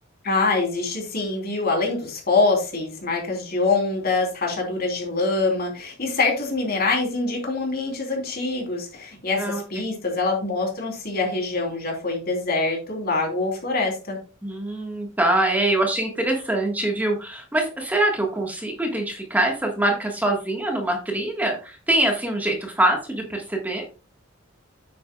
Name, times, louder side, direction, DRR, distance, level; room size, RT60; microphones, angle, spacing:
voice 1, 0.2-14.2, left 3 dB, 50° left, 1 dB, 3.4 m, -24 dB
voice 2, 9.4-9.9 14.4-23.8, right 1 dB, 10° right, 0 dB, 1.5 m, -24 dB
9.4 x 8.4 x 2.3 m, 0.33 s
head